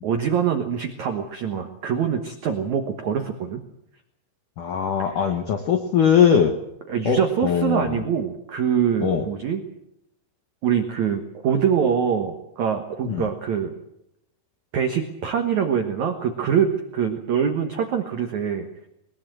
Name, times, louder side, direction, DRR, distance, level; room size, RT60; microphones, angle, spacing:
voice 1, 0.0-3.6 5.0-5.2 6.9-9.6 10.6-13.8 14.7-18.7, right 7 dB, 80° right, 5 dB, 1.6 m, -24 dB
voice 2, 4.6-6.5 7.1-8.0 9.0-9.2 13.1-13.3, left 7 dB, 70° left, 5 dB, 2.0 m, -21 dB
21.0 x 20.0 x 7.8 m, 0.82 s
omnidirectional pair, 5.6 m